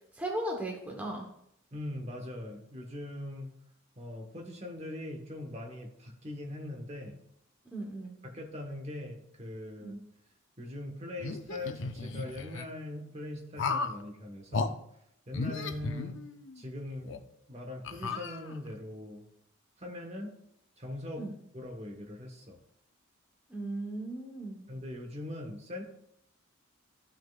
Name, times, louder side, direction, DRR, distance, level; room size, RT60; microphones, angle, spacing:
voice 1, 0.1-1.3 7.7-8.2 9.8-10.0 21.2-21.3 23.5-24.7, right 1 dB, 10° right, 0 dB, 1.0 m, -37 dB
voice 2, 1.7-3.5 4.0-7.2 8.2-10.0 10.6-14.8 15.3-16.2 16.6-17.2 17.5-19.2 19.8-20.3 20.8-21.2 21.5-22.6 24.7-25.8, left 1 dB, 30° right, 3 dB, 1.1 m, -41 dB
sound 1, 11.2-12.7 13.6-14.0 14.5-14.7 15.3-16.6 17.1-17.2 17.8-18.8, left 4 dB, 60° left, 0.5 m, -35 dB
13.0 x 6.4 x 2.4 m, 0.73 s
head